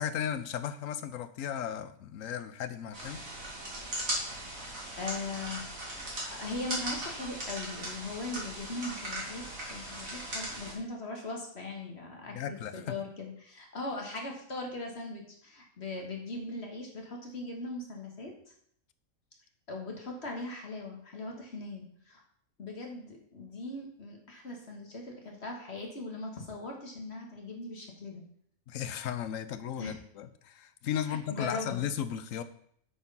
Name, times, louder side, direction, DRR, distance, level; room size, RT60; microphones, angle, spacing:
voice 1, 0.0-3.2 12.3-12.9 28.7-32.4, left 9 dB, 75° left, 12 dB, 1.1 m, -35 dB
sound 1, 2.9-10.7, right 1 dB, 90° right, 3.1 m, -38 dB
voice 2, 4.2-4.7 5.0-5.6 5.9-18.3 19.7-22.2 22.6-28.2 29.8-30.0 31.1-31.8, left 2 dB, 55° left, 1 dB, 1.7 m, -40 dB
8.6 x 4.8 x 5.5 m, 0.64 s
omnidirectional pair, 1.4 m